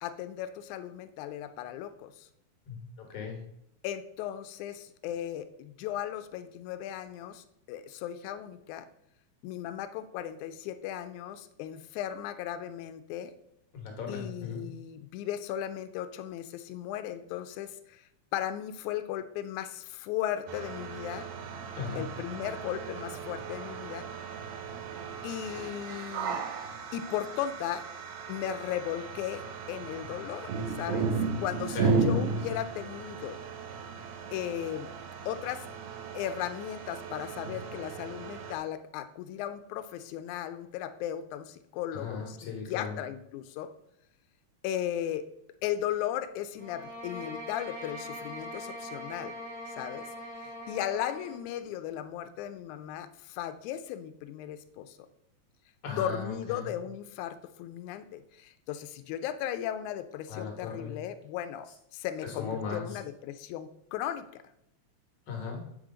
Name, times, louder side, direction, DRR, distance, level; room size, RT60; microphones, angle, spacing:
voice 1, 0.0-2.3 3.8-8.9 9.4-13.3 14.1-21.3 22.0-24.1 25.2-26.4 26.9-27.9 28.3-31.1 31.4-33.4 34.3-34.9 35.3-35.7 36.1-42.4 42.7-43.7 44.6-45.3 45.6-49.4 49.7-50.1 50.3-55.0 56.0-64.4, left 11 dB, 85° left, 10 dB, 1.9 m, -36 dB
voice 2, 2.7-3.4 13.7-14.6 21.7-22.1 31.7-32.0 41.9-43.0 55.8-56.7 60.3-60.9 62.2-63.0 65.3-65.6, left 5 dB, 60° left, 1 dB, 2.0 m, -37 dB
sound 1, 20.5-38.6, right 4 dB, 75° right, 1.7 m, -35 dB
sound 2, 46.6-51.4, equal, 40° right, 1.9 m, -42 dB
7.9 x 4.9 x 3.7 m, 0.80 s
omnidirectional pair, 3.4 m